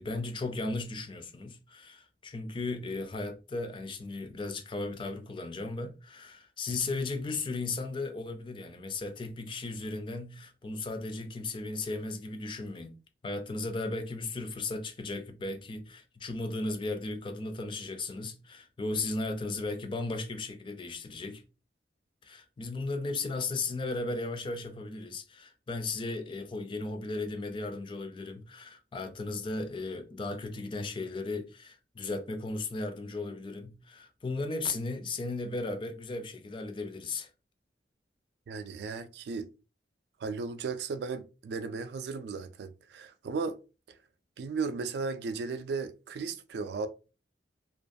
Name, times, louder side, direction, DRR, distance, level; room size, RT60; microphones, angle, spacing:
voice 1, 0.0-13.0 13.2-21.4 22.2-37.3, left 3 dB, 30° left, 0.4 m, -36 dB
voice 2, 38.5-39.5 40.2-43.6 44.4-46.9, right 4 dB, 65° right, 0.3 m, -35 dB
2.4 x 2.2 x 2.5 m
head